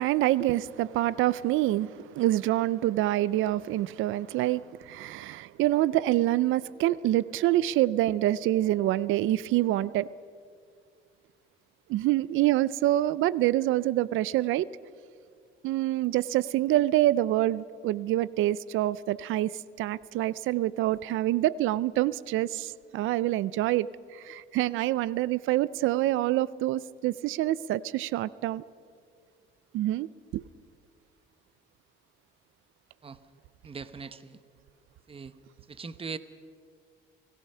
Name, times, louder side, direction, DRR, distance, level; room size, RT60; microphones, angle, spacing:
voice 1, 0.0-10.1 11.9-14.7 15.6-19.5 19.8-28.6 29.7-30.1 30.3-30.4, right 15 dB, 90° right, 20 dB, 0.5 m, -26 dB
voice 2, 33.6-34.4 35.1-35.3 35.7-36.2, right 5 dB, 30° right, 13 dB, 0.9 m, -40 dB
29.0 x 17.5 x 5.6 m, 2.1 s
cardioid pair, 90°, 20 cm